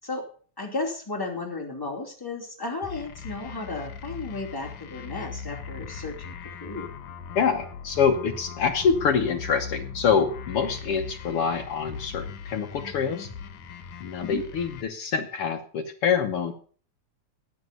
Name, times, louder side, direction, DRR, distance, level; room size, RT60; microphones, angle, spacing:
voice 1, 0.6-6.3 6.6-6.9 14.2-14.4, left 3 dB, 5° left, -1 dB, 2.8 m, -34 dB
sound 1, 2.8-14.8, left 6 dB, 80° left, 2.8 m, -39 dB
voice 2, 7.3-13.3 14.0-16.5, left 6 dB, 65° left, 5 dB, 1.5 m, -25 dB
14.0 x 9.4 x 5.3 m, 0.43 s
omnidirectional pair, 3.5 m